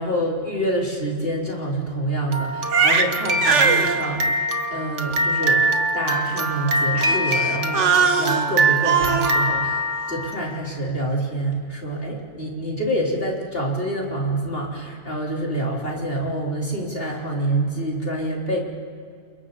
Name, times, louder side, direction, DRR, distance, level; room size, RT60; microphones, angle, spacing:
voice 1, 0.0-4.3 4.7-5.7 5.9-18.6, right 1 dB, 50° left, -3 dB, 4.1 m, -26 dB
Crying sobbing, 2.3-10.5, right 3 dB, 80° right, 1.6 m, -21 dB
29.0 x 28.5 x 4.1 m, 2.1 s
omnidirectional pair, 1.2 m